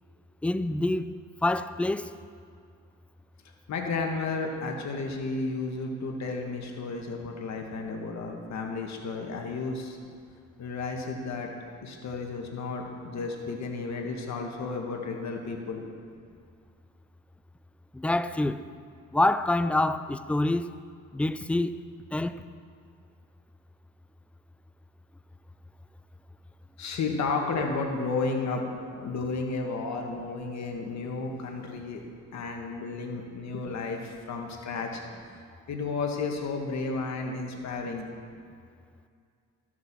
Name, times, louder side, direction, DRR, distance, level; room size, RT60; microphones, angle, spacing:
voice 1, 0.4-2.1 17.9-18.6 19.1-20.7 21.1-21.8 22.1-22.4, left 2 dB, 5° left, 0.4 m, -26 dB
voice 2, 3.7-10.0 10.6-11.5 11.8-15.8 26.8-28.6 29.0-32.0 32.3-35.0 35.7-38.0, left 4 dB, 65° left, 1.9 m, -32 dB
14.5 x 7.2 x 6.2 m
cardioid pair, 90°, 30 cm